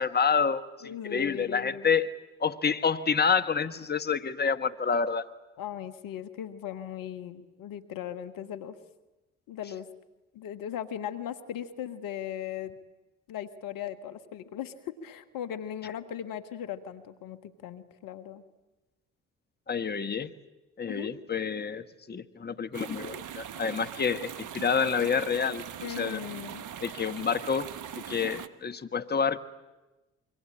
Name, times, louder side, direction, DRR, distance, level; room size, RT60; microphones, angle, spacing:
voice 1, 0.0-2.1 2.4-5.3 19.7-20.3 20.8-26.2 26.8-27.7 28.1-29.4, left 6 dB, 30° left, 10 dB, 1.3 m, -28 dB
voice 2, 0.8-1.9 5.6-8.8 9.5-9.9 10.3-12.7 13.3-18.4 20.9-21.1 25.8-26.6, left 10 dB, 70° left, 10 dB, 1.5 m, -38 dB
sound 1, 22.7-28.5, right 9 dB, 60° right, 1.3 m, -41 dB
26.0 x 23.5 x 8.8 m, 1.1 s
hypercardioid pair, 50°, 35 cm